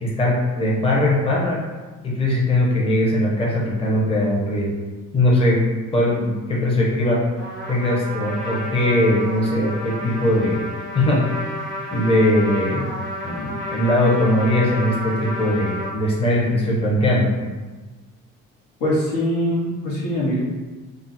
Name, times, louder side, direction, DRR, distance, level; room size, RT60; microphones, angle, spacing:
voice 1, 0.0-1.6 2.0-4.7 5.1-7.3 7.7-10.7 10.9-11.5 11.9-12.9 13.2-17.4, left 1 dB, 20° left, -4 dB, 0.6 m, -20 dB
Trumpet, 7.4-15.9, left 1 dB, 35° left, 1.0 m, -31 dB
voice 2, 18.8-20.4, equal, 80° left, -5 dB, 1.0 m, -22 dB
2.4 x 2.0 x 3.9 m, 1.3 s
cardioid pair, 105°, 32 cm